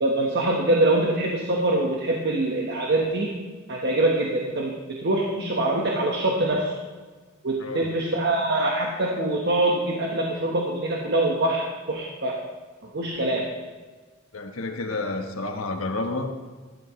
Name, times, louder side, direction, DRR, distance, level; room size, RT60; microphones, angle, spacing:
voice 1, 0.0-3.4 3.7-6.7 7.4-12.4 12.9-13.5, right 2 dB, 55° right, -1 dB, 1.3 m, -24 dB
voice 2, 14.3-16.3, left 2 dB, 90° left, 5 dB, 1.3 m, -30 dB
17.0 x 12.0 x 3.2 m, 1.4 s
head